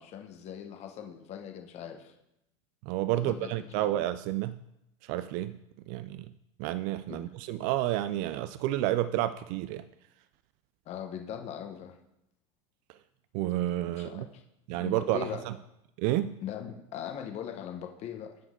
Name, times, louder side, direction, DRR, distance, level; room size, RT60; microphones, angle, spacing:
voice 1, 0.0-2.1 3.1-3.9 7.1-7.3 10.9-12.0 14.0-14.4 14.7-15.4 16.4-18.4, left 9 dB, 45° left, 5 dB, 1.1 m, -40 dB
voice 2, 2.8-4.6 5.0-5.6 5.9-6.3 6.6-9.8 13.3-14.3 14.7-15.5 16.0-16.3, right 14 dB, 60° right, 12 dB, 0.5 m, -30 dB
11.0 x 7.7 x 3.8 m, 0.84 s
supercardioid pair, 115°, 16 cm